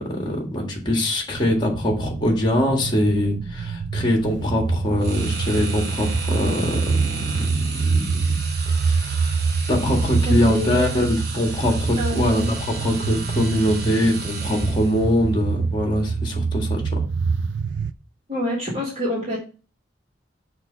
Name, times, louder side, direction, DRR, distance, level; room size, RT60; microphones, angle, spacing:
voice 1, 0.0-9.4 9.7-17.0, left 1 dB, 25° left, 1 dB, 1.7 m, -23 dB
sound 1, 1.4-17.9, right 5 dB, 75° right, 0.4 m, -26 dB
sound 2, 5.0-15.1, right 4 dB, 60° right, 1.3 m, -35 dB
voice 2, 10.3-10.9 12.0-12.5 18.3-19.4, left 1 dB, 35° right, -6 dB, 1.8 m, -26 dB
6.1 x 3.0 x 5.5 m, 0.35 s
head